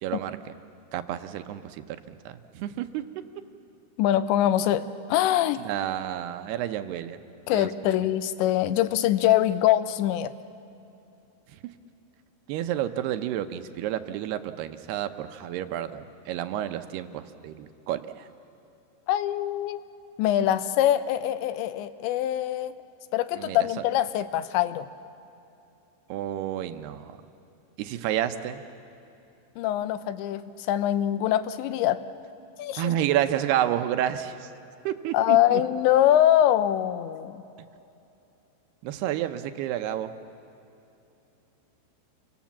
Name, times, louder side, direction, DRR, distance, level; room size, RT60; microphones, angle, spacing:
voice 1, 0.0-0.5 0.9-3.0 5.6-7.2 7.5-8.1 11.5-11.6 12.5-18.3 23.4-23.7 26.1-27.2 27.8-28.6 32.8-34.5 34.8-35.6 38.8-40.1, right 11 dB, 75° right, 9 dB, 2.6 m, -30 dB
voice 2, 4.0-5.6 7.5-10.3 19.1-19.8 20.2-22.7 23.1-24.9 29.6-32.0 32.6-32.8 35.1-37.4, left 12 dB, 85° left, 13 dB, 3.1 m, -23 dB
29.5 x 25.0 x 7.3 m, 2.8 s
omnidirectional pair, 5.2 m